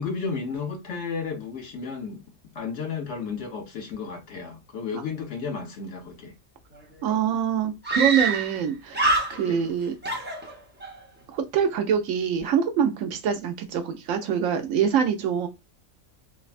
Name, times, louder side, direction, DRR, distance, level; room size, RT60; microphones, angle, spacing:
voice 1, 0.0-2.2 2.5-6.3 9.4-9.6, left 5 dB, 65° left, 0.9 m, -33 dB
Screaming, 6.7-6.8 7.0-7.1 7.8-8.6 8.9-9.7 10.0-10.9, right 3 dB, 15° right, 0.4 m, -25 dB
voice 2, 7.0-9.9 11.3-15.5, right 8 dB, 70° right, 0.9 m, -25 dB
3.3 x 2.1 x 2.4 m
omnidirectional pair, 1.5 m